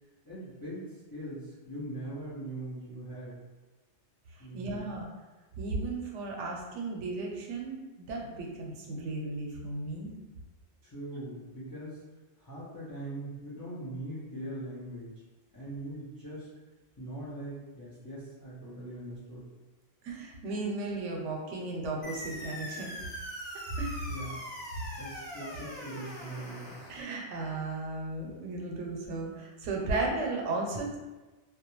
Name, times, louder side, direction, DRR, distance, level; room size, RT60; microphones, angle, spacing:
voice 1, 0.2-3.4 4.4-4.9 10.8-12.0 12.4-15.1 15.5-16.5 17.0-19.4 24.1-24.4 25.0-26.8, right 1 dB, 30° left, -9 dB, 0.4 m, -41 dB
voice 2, 4.4-5.1 5.6-10.1 20.0-23.0 23.8-24.1 26.9-31.0, right 3 dB, 85° right, 0 dB, 0.9 m, -35 dB
sound 1, 22.0-27.0, equal, 85° left, 1.0 m, -42 dB
2.3 x 2.1 x 2.9 m, 1.2 s
omnidirectional pair, 1.2 m